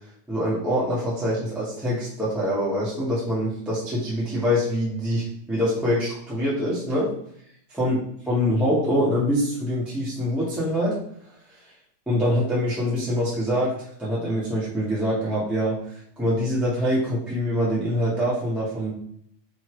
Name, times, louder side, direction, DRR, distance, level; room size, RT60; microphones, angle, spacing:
voice 1, 0.3-7.1 7.7-8.0 8.3-11.0 12.1-18.9, equal, ahead, -8 dB, 1.9 m, -24 dB
6.2 x 4.5 x 5.0 m, 0.66 s
omnidirectional pair, 3.7 m